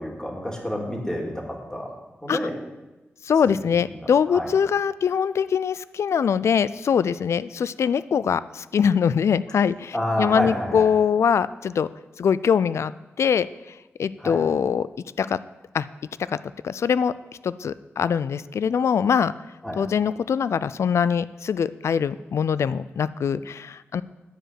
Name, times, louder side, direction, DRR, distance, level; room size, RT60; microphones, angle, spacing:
voice 1, 0.0-1.3 1.7-1.9 2.2-2.5 3.5-3.6 4.3-4.5 9.9-10.9 14.2-14.4 19.6-19.8, equal, 15° left, -1 dB, 2.8 m, -28 dB
voice 2, 3.3-11.9 12.2-12.9 13.2-13.5 14.0-14.9 15.2-15.4 15.7-15.9 16.3-16.4 16.6-17.1 17.4-19.3 19.8-24.0, left 7 dB, 75° left, 17 dB, 0.3 m, -22 dB
9.9 x 5.1 x 7.7 m, 1.1 s
cardioid pair, 50°, 5 cm